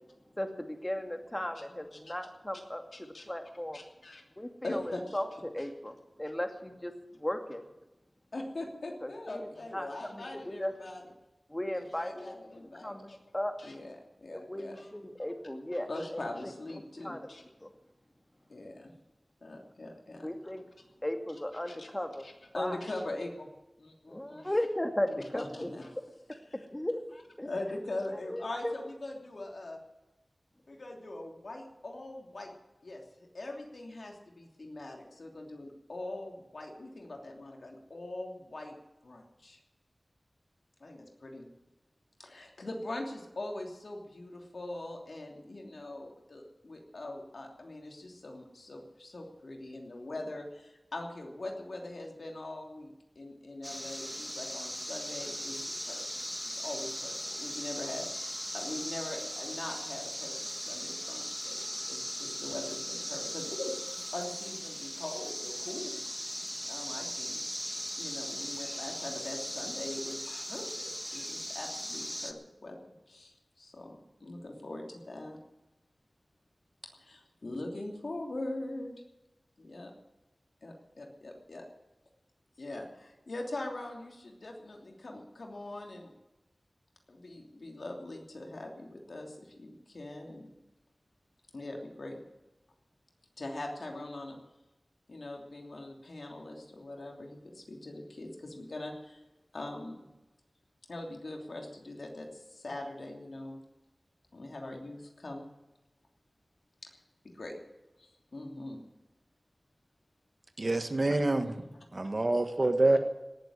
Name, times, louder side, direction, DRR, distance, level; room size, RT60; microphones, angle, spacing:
voice 1, 0.4-3.8 4.4-7.7 9.0-9.5 9.7-11.0 11.5-12.4 12.8-13.5 14.3-16.2 17.0-17.7 20.2-20.7 21.0-22.3 22.6-22.8 24.1-25.7 26.7-27.0 27.4-27.5 28.1-28.8, left 1 dB, 20° left, 5 dB, 2.2 m, -36 dB
voice 2, 2.9-3.3 3.7-4.2 4.6-5.2 5.6-5.7 8.3-11.0 11.7-13.2 13.6-14.9 15.7-17.4 18.5-18.9 19.4-20.3 21.7-21.9 22.2-23.5 23.8-24.5 25.4-25.9 27.4-29.8 30.7-32.5 32.8-38.7 39.0-39.6 40.8-41.5 42.2-56.0 56.5-60.3 60.7-63.9 64.1-66.0 66.7-75.4 77.0-78.9 79.6-79.9 80.6-81.6 82.6-86.1 87.1-90.5 91.5-92.2 93.4-94.4 95.1-99.2 99.5-100.1 100.9-103.6 104.3-105.5 106.8-106.9 107.2-107.6 108.0-108.8 111.4-111.7 112.8-113.0, left 2 dB, 75° left, 1 dB, 3.0 m, -42 dB
sound 1, 53.6-72.3, equal, ahead, 1.6 m, -38 dB
voice 3, 110.6-111.6 111.9-113.0, right 2 dB, 55° right, 7 dB, 1.5 m, -26 dB
18.0 x 7.7 x 9.8 m, 0.99 s
cardioid pair, 40°, 0 cm